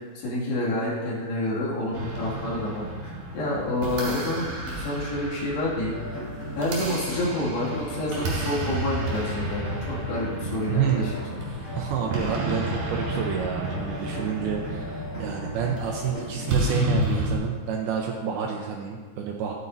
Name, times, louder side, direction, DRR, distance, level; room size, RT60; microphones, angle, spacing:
voice 1, 0.2-6.0 6.6-11.5 19.0-19.2, left 1 dB, 70° left, -6 dB, 4.3 m, -29 dB
sound 1, 1.9-17.4, right 1 dB, 55° right, 4.0 m, -32 dB
sound 2, 5.9-16.7, left 1 dB, 30° left, 3.5 m, -37 dB
voice 2, 10.7-11.2 11.8-19.5, right 7 dB, 75° right, 1 dB, 2.3 m, -29 dB
13.5 x 9.6 x 2.7 m, 1.5 s
omnidirectional pair, 5.0 m